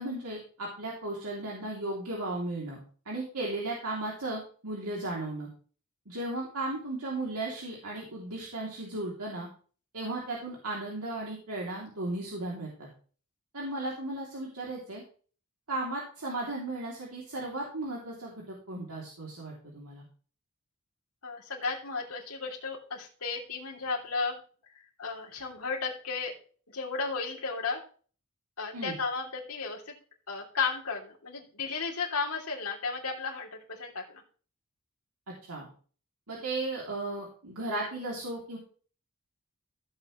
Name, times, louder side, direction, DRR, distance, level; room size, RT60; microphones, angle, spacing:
voice 1, 0.0-2.8 3.0-5.5 6.1-9.5 9.9-12.9 13.5-15.0 15.7-20.0 28.7-28.9 35.5-35.7 36.3-38.6, right 2 dB, 85° right, -3 dB, 3.0 m, -35 dB
voice 2, 21.2-24.4 24.7-26.3 26.7-27.8 28.6-29.9 30.3-34.2, left 4 dB, 85° left, -1 dB, 3.2 m, -34 dB
15.5 x 8.0 x 3.2 m, 0.41 s
head